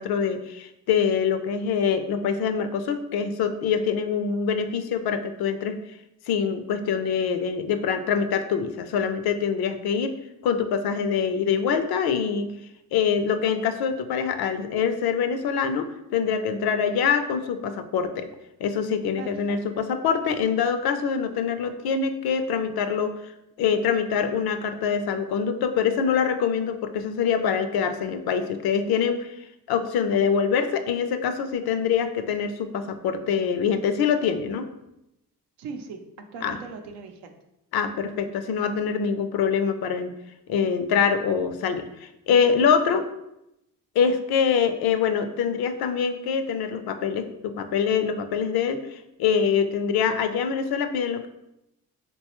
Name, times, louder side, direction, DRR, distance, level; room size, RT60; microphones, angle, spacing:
voice 1, 0.0-6.0 6.3-12.5 12.9-18.3 18.6-23.3 23.6-34.7 36.4-36.6 37.7-40.1 40.5-43.0 43.9-51.3, left 6 dB, 70° left, 9 dB, 0.5 m, -24 dB
voice 2, 19.2-19.6 35.6-37.4, right 5 dB, 90° right, 5 dB, 0.6 m, -39 dB
3.9 x 2.2 x 2.9 m, 0.86 s
cardioid pair, 75°, 40 cm